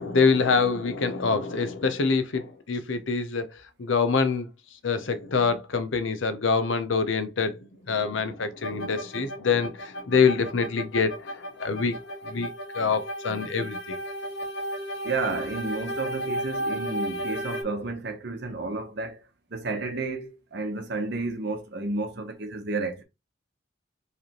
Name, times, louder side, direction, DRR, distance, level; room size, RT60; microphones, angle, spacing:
voice 1, 0.0-4.5 4.8-7.6 7.9-14.0, left 5 dB, 75° left, 0.7 m, -25 dB
Strange Synth Intro, 8.6-17.6, equal, 55° left, 1.4 m, -34 dB
voice 2, 15.0-19.2 19.5-23.0, right 3 dB, 55° right, 1.0 m, -31 dB
4.8 x 3.3 x 3.0 m
head